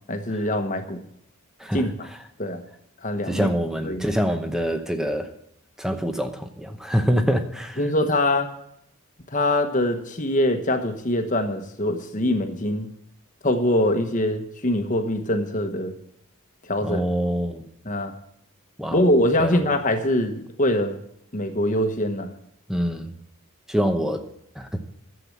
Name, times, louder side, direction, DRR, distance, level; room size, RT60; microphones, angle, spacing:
voice 1, 0.1-1.0 1.7-1.9 2.4-2.6 3.0-3.5 3.8-4.1 7.8-8.5 9.3-12.9 13.4-16.0 16.7-17.0 17.8-18.1 18.9-21.0 21.3-22.3, left 1 dB, 35° left, 6 dB, 1.1 m, -23 dB
voice 2, 3.2-5.3 5.8-7.8 16.8-17.7 18.8-19.1 19.4-19.6 22.7-23.1 23.7-24.2 24.6-24.7, equal, ahead, 7 dB, 0.8 m, -25 dB
11.5 x 7.8 x 7.3 m, 0.75 s
head